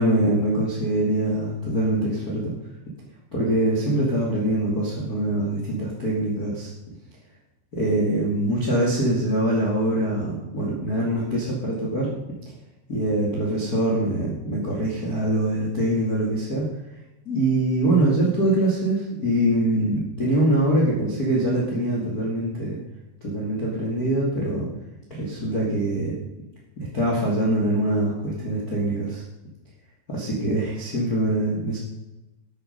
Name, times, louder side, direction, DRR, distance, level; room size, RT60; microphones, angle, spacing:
voice 1, 0.0-2.5 3.3-6.7 7.7-12.1 12.9-16.7 17.3-22.8 23.2-24.7 25.1-26.1 26.8-29.2 30.1-31.8, right 1 dB, 30° left, -4 dB, 2.1 m, -23 dB
12.5 x 9.0 x 5.3 m, 0.99 s
omnidirectional pair, 5.0 m